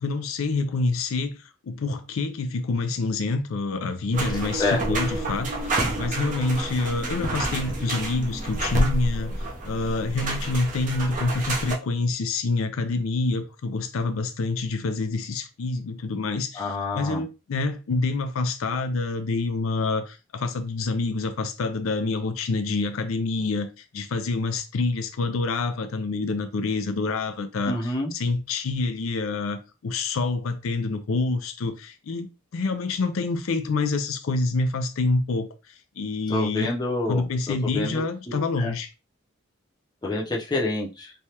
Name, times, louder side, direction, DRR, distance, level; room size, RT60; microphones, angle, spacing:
voice 1, 0.0-9.3 9.7-36.7 37.1-38.9, left 3 dB, 75° left, 0.4 m, -27 dB
sound 1, 4.1-11.8, right 1 dB, 40° right, 0.6 m, -29 dB
voice 2, 16.5-17.2 27.7-28.1 36.3-38.7 40.0-41.1, left 2 dB, 20° left, 0.6 m, -28 dB
3.2 x 2.3 x 2.8 m
head